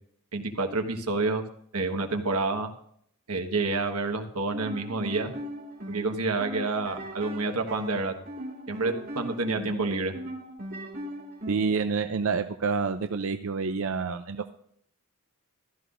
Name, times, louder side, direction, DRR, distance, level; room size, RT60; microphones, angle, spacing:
voice 1, 0.3-1.4 1.7-2.7 3.3-5.3 5.9-8.1 8.7-10.1, right 3 dB, 90° right, 4 dB, 1.4 m, -28 dB
sound 1, 4.4-11.9, right 1 dB, 45° right, 2.4 m, -39 dB
voice 2, 11.5-14.5, right 5 dB, 65° right, 8 dB, 0.5 m, -28 dB
15.0 x 13.0 x 2.6 m, 0.66 s
head